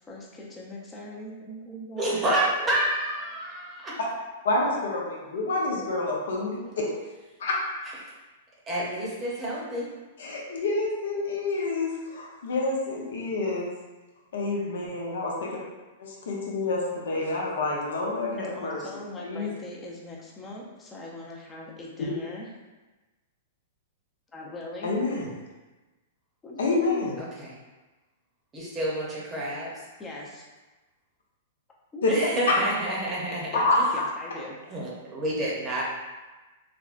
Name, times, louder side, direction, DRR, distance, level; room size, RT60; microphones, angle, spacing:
voice 1, 0.1-2.3 2.6-2.7 18.4-22.5 24.3-24.9 26.4-26.6 26.9-27.0 30.0-30.4 31.9-32.0 33.5-34.6, left 1 dB, 20° left, -3 dB, 0.6 m, -41 dB
voice 2, 2.0-3.9 8.7-9.9 27.2-27.6 28.5-29.7 32.1-33.6 34.7-35.8, right 1 dB, 20° right, -5 dB, 0.8 m, -29 dB
voice 3, 4.4-6.9 7.4-7.5 10.2-13.7 14.3-15.6 16.0-18.8 19.2-19.5 24.8-25.3 26.6-27.2 32.0-32.1 33.5-33.8, left 3 dB, 75° left, -2 dB, 0.7 m, -28 dB
3.5 x 2.2 x 2.5 m, 1.2 s
hypercardioid pair, 125°, 0 cm